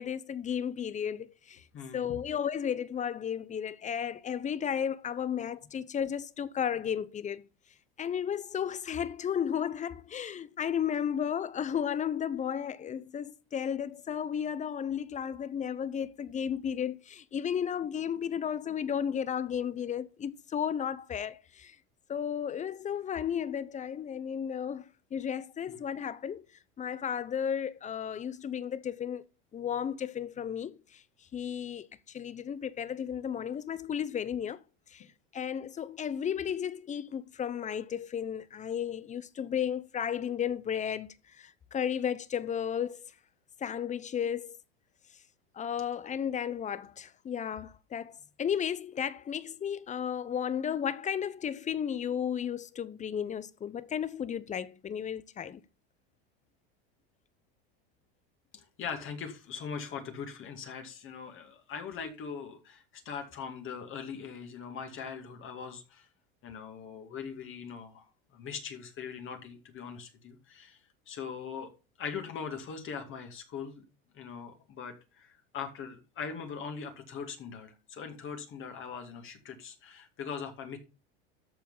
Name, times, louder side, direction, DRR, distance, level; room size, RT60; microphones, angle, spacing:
voice 1, 0.0-1.6 1.9-7.4 8.0-21.7 22.1-24.8 25.1-26.4 26.8-29.2 29.5-30.7 31.3-31.9 32.1-34.6 34.9-35.0 35.3-41.1 41.4-43.0 43.6-44.6 45.6-48.1 48.4-55.6, left 8 dB, 25° left, 0.8 m, -33 dB
voice 2, 1.7-2.2 58.5-66.1 66.4-68.0 68.3-70.8 71.1-71.7 72.0-73.8 74.1-80.8, left 6 dB, 40° left, 2.2 m, -41 dB
13.5 x 4.6 x 5.5 m
supercardioid pair, 115°, 31 cm